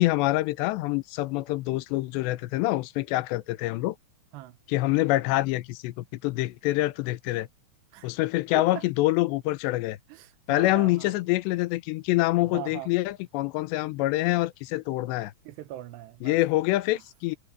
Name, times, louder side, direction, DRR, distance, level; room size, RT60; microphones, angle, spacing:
voice 1, 0.0-4.0 4.7-7.5 8.0-10.0 10.5-15.3 16.2-17.4, left 18 dB, 90° left, 3.0 m, -26 dB
voice 2, 8.5-8.9 10.1-11.1 12.4-12.9 15.4-16.4 16.9-17.0, right 15 dB, 80° right, 3.1 m, -40 dB
omnidirectional pair, 4.9 m